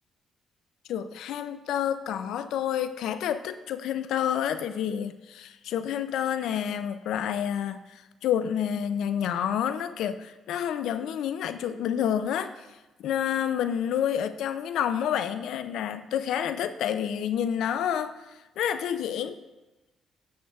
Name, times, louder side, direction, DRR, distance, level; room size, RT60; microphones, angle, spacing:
voice 1, 0.9-19.4, left 9 dB, 80° left, 12 dB, 0.3 m, -29 dB
12.0 x 7.9 x 2.3 m, 1.1 s
cardioid pair, 90°, 0 cm